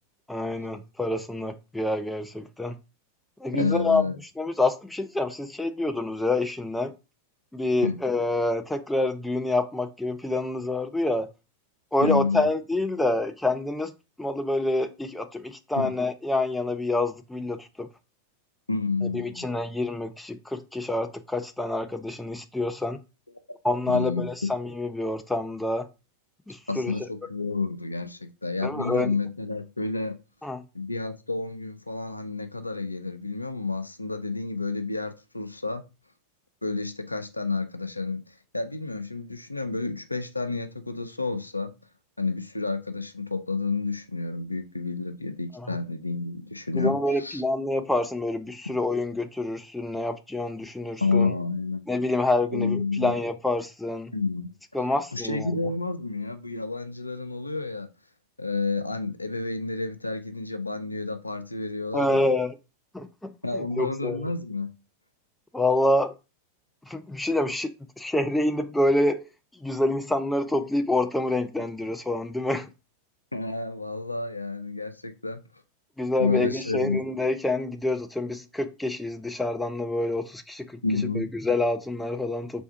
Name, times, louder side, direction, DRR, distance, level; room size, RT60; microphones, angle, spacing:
voice 1, 0.3-2.8 3.4-4.0 4.4-6.9 7.5-11.3 11.9-13.9 14.2-17.9 19.1-23.0 23.6-25.9 26.5-26.9 28.6-29.1 30.4-30.6 45.5-45.7 46.7-51.3 51.9-54.1 54.7-55.5 61.9-62.6 62.9-64.3 65.5-66.1 66.9-69.3 69.6-72.7 76.0-80.7 81.2-82.6, left 2 dB, 5° left, 0.4 m, -27 dB
voice 2, 3.5-4.2 7.8-8.0 12.0-12.5 15.8-15.9 18.7-19.4 23.9-24.5 26.7-30.1 30.7-35.8 36.6-38.2 38.5-41.7 42.2-47.4 51.0-51.8 52.5-53.1 54.1-54.5 55.1-57.9 58.4-62.3 63.4-64.7 73.3-75.4 76.2-77.0 80.8-81.3, left 3 dB, 85° left, 0.4 m, -30 dB
3.3 x 2.6 x 4.3 m
figure-of-eight pair, 90°, 0 cm